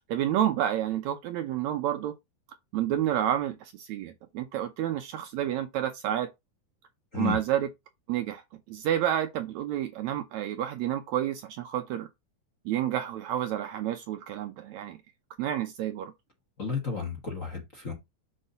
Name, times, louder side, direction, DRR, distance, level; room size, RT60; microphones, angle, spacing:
voice 1, 0.1-2.1 2.7-6.3 7.1-7.7 8.1-8.4 8.7-12.1 12.7-15.0 15.4-16.1, right 11 dB, 75° right, 1.8 m, -29 dB
voice 2, 16.6-17.9, left 6 dB, 35° left, 1.5 m, -32 dB
6.7 x 3.7 x 5.5 m
omnidirectional pair, 3.7 m